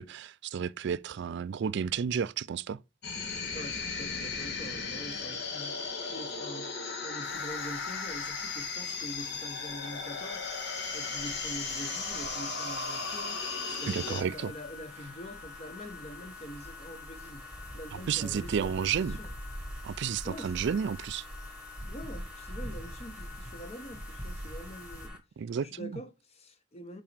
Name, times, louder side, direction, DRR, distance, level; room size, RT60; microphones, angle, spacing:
voice 1, 0.0-2.8 13.9-14.5 18.1-19.2 19.8-21.2 25.4-25.9, right 7 dB, 60° right, 0.4 m, -32 dB
sound 1, 3.0-14.2, left 4 dB, 60° left, 1.6 m, -36 dB
voice 2, 3.5-6.7 7.0-10.4 10.9-13.4 13.8-17.5 17.7-19.3 20.2-20.6 21.9-25.1 25.6-27.0, equal, 35° left, 1.0 m, -45 dB
sound 2, 7.2-25.1, equal, 15° left, 2.1 m, -46 dB
sound 3, 11.8-25.2, left 4 dB, 5° right, 1.2 m, -48 dB
5.8 x 4.1 x 5.0 m
head